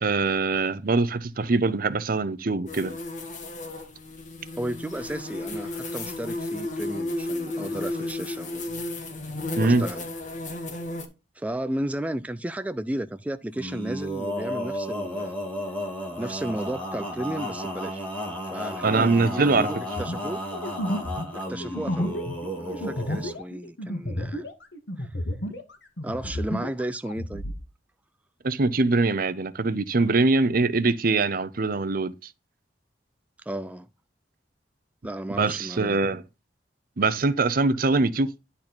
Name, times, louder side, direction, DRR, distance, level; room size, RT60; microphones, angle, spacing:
voice 1, 0.0-2.9 9.5-9.9 18.8-19.7 28.4-32.3 35.3-36.2 37.0-38.4, right 3 dB, 55° right, 0.7 m, -23 dB
sound 1, 2.7-11.1, left 2 dB, 45° left, 1.7 m, -33 dB
voice 2, 4.6-8.8 9.6-10.1 11.4-15.4 16.2-18.1 18.4-20.4 21.3-22.2 22.5-24.5 25.0-25.2 26.0-27.4 33.5-33.9 35.0-36.0, right 1 dB, 10° right, 0.3 m, -33 dB
Male singing, 13.5-23.4, equal, 10° left, 2.2 m, -33 dB
sound 2, 20.0-25.7 26.0-27.6, equal, 75° left, 1.7 m, -32 dB
10.0 x 4.2 x 4.3 m
head